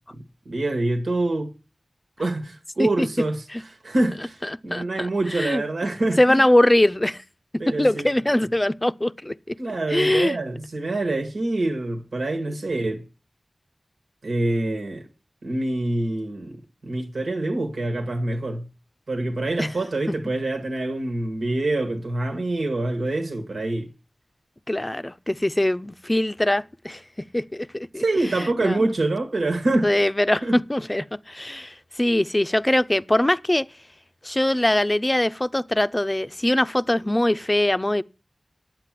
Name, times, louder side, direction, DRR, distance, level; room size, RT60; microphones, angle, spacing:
voice 1, 0.1-1.5 2.2-3.4 3.8-6.4 7.6-8.1 9.6-13.0 14.2-15.1 15.4-18.7 19.1-23.9 28.0-29.9 30.4-30.6, right 2 dB, 90° right, 1.7 m, -26 dB
voice 2, 4.4-5.6 6.2-7.2 7.8-9.6 9.9-10.4 19.6-19.7 20.1-20.2 24.7-27.0 27.3-28.9 29.8-33.7 34.2-38.0, left 1 dB, 25° left, 0.5 m, -22 dB
9.9 x 8.0 x 7.6 m
cardioid pair, 40°, 0 cm